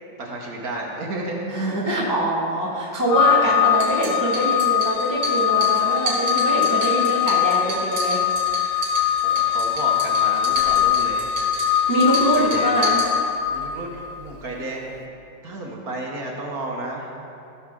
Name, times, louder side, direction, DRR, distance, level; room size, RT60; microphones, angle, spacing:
voice 1, 0.2-1.5 3.1-3.5 9.1-11.3 12.3-12.8 13.5-15.0 15.4-17.1, right 2 dB, 55° right, -1 dB, 1.5 m, -32 dB
voice 2, 1.5-8.2 11.9-13.0, right 1 dB, 15° left, -4 dB, 1.0 m, -23 dB
Organ, 3.1-13.9, left 10 dB, 75° left, 0.8 m, -21 dB
sound 1, 3.6-13.6, right 3 dB, 80° right, 2.8 m, -32 dB
15.5 x 6.5 x 3.7 m, 2.7 s
omnidirectional pair, 2.1 m